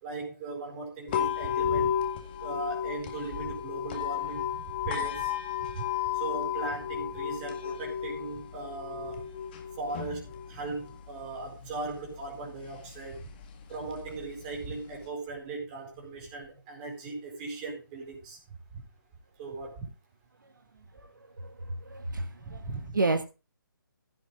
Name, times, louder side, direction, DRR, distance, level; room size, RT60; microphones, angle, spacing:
voice 1, 0.0-2.1 2.4-4.6 4.8-5.3 5.7-5.8 6.1-9.3 9.8-13.3 13.7-18.4 18.7-18.8 19.4-19.9 22.4-23.0, right 3 dB, 20° right, 1 dB, 4.5 m, -38 dB
sound 1, 1.1-15.1, left 9 dB, 25° left, 2.0 m, -34 dB
voice 2, 21.8-22.6 22.9-23.2, right 3 dB, 60° right, 6 dB, 1.6 m, -29 dB
16.0 x 6.3 x 4.8 m, 0.30 s
figure-of-eight pair, 145°, 12 cm